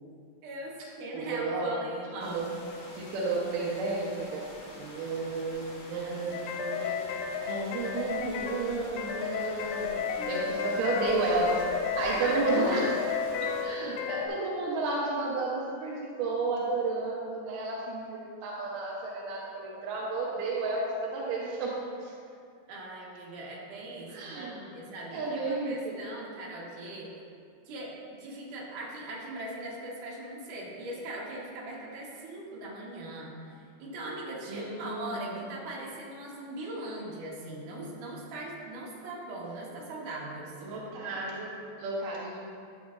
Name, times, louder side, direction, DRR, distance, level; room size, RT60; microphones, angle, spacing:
voice 1, 0.4-2.4 10.2-10.8 12.2-12.4 22.7-27.1 27.7-40.5, right 1 dB, 60° right, -5 dB, 2.3 m, -40 dB
voice 2, 1.1-1.8 2.2-2.5 2.9-4.4 4.8-7.1 7.5-11.6 12.0-13.0 13.4-22.1 24.1-24.7 25.1-26.0 34.5-35.4 40.6-42.4, right 3 dB, 80° right, -5 dB, 1.9 m, -32 dB
sound 1, 2.2-13.6, left 1 dB, 55° left, 1.9 m, -47 dB
sound 2, 6.3-14.3, left 6 dB, 85° left, 2.4 m, -33 dB
12.0 x 8.4 x 2.6 m, 2.3 s
omnidirectional pair, 5.2 m